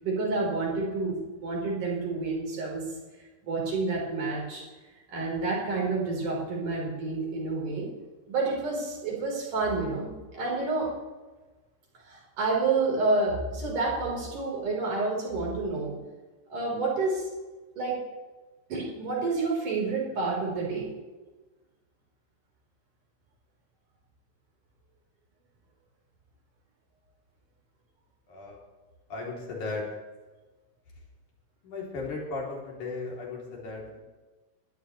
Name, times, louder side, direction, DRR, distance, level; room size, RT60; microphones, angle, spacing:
voice 1, 0.0-2.9 3.4-4.6 5.1-7.9 8.3-10.9 12.1-15.9 16.5-17.3 17.8-18.0 18.7-20.9, right 3 dB, 85° right, -3 dB, 5.6 m, -29 dB
voice 2, 28.3-28.6 29.1-29.9 31.6-34.0, left 3 dB, 75° left, -2 dB, 4.6 m, -36 dB
21.5 x 13.0 x 3.2 m, 1.2 s
omnidirectional pair, 3.5 m